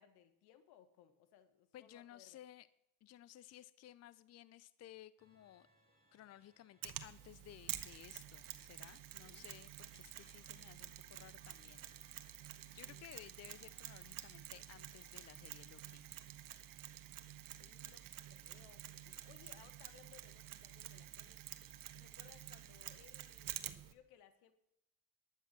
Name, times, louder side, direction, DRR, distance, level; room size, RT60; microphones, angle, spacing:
voice 1, 0.0-2.4 9.3-9.5 12.8-13.4 17.6-21.5 21.9-24.5, left 9 dB, 80° left, 11 dB, 1.4 m, -65 dB
voice 2, 1.7-2.7 3.0-5.7 6.1-11.9 12.7-16.1, left 12 dB, 45° left, 18 dB, 0.5 m, -57 dB
sound 1, 5.2-16.0, right 2 dB, 25° right, 5.1 m, -73 dB
Mechanisms, 6.8-23.9, right 12 dB, 60° right, 1.2 m, -50 dB
11.5 x 8.4 x 6.1 m, 0.80 s
supercardioid pair, 75°, 38 cm